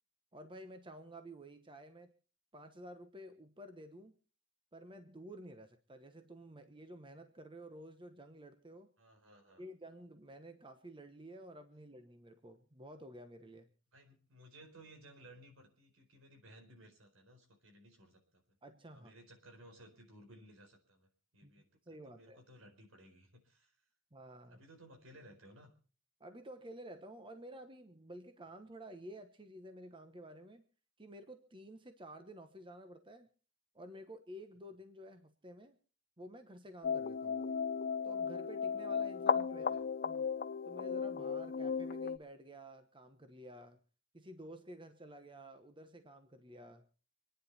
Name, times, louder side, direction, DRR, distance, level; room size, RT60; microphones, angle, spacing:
voice 1, 0.3-2.1 2.5-4.1 4.7-8.9 9.6-13.7 18.6-19.1 21.4-21.5 21.9-22.4 24.1-24.6 26.2-30.6 31.0-33.3 33.7-35.8 36.2-37.4 38.0-40.3 40.7-43.8 44.1-46.8, right 1 dB, 25° right, 8 dB, 1.1 m, -52 dB
voice 2, 9.0-9.7 13.9-18.4 18.9-21.7 22.0-23.8 24.5-25.7 39.2-39.8, right 1 dB, 80° right, 5 dB, 4.5 m, -59 dB
sound 1, 36.8-42.2, left 6 dB, 45° left, 0.6 m, -35 dB
26.5 x 10.0 x 4.1 m, 0.38 s
head